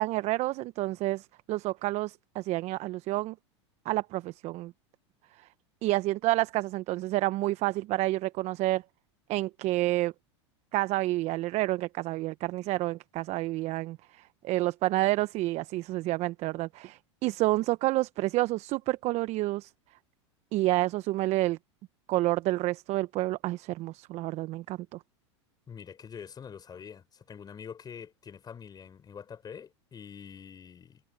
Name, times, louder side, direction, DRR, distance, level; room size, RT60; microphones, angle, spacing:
voice 1, 0.0-3.3 3.8-4.7 5.8-8.8 9.3-10.1 10.7-14.0 14.4-19.7 20.5-21.6 22.1-25.0, right 18 dB, 45° right, 0.9 m, -29 dB
voice 2, 25.7-31.0, left 7 dB, 25° left, 5.7 m, -45 dB
hypercardioid pair, 100°, 15 cm